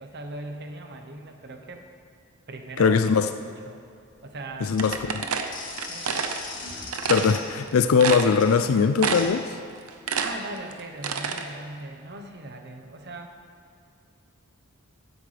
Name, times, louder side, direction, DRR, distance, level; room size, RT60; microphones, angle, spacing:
voice 1, 0.0-1.8 2.5-3.8 4.2-4.8 5.9-6.2 10.2-13.3, right 2 dB, 50° right, 4 dB, 1.0 m, -39 dB
voice 2, 2.8-3.3 4.6-5.3 7.1-9.6, left 5 dB, 70° left, 10 dB, 0.4 m, -21 dB
sound 1, 4.1-9.2, left 3 dB, 40° left, 2.0 m, -40 dB
sound 2, 4.8-6.4 6.9-7.3 7.7-7.8 8.0-8.6 9.0-9.4 9.7-11.4, right 6 dB, 90° right, 0.8 m, -28 dB
16.0 x 9.6 x 3.4 m, 2.4 s
head